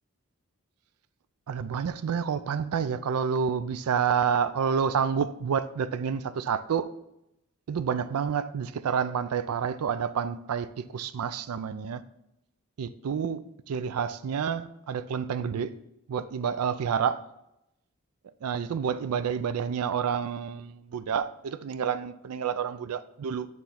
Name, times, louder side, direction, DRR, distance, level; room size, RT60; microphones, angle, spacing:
voice 1, 1.5-6.9 7.7-12.0 12.8-15.7 16.1-17.2 18.4-23.5, right 7 dB, 85° right, 0.4 m, -29 dB
9.1 x 3.2 x 5.6 m
head